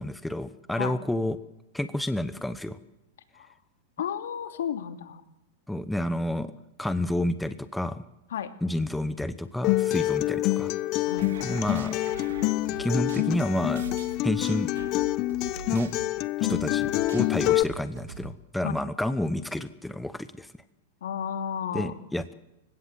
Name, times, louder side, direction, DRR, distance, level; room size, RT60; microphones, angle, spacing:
voice 1, 0.0-1.4 1.7-2.8 5.7-6.5 6.8-8.0 8.6-10.7 11.4-12.0 12.8-13.8 14.2-14.7 15.7-15.9 16.4-16.9 17.1-20.5 21.7-22.3, left 1 dB, 5° left, 12 dB, 1.0 m, -29 dB
voice 2, 4.0-5.2 8.3-8.5 9.9-10.1 11.0-11.6 16.4-16.6 18.6-18.7 21.0-21.9, left 8 dB, 80° left, 8 dB, 2.7 m, -33 dB
Acoustic guitar, 9.6-17.6, left 17 dB, 40° left, 0.8 m, -26 dB
sound 1, 11.1-18.3, right 6 dB, 85° right, 3.0 m, -43 dB
29.0 x 16.5 x 7.8 m, 0.93 s
hypercardioid pair, 140°, 0 cm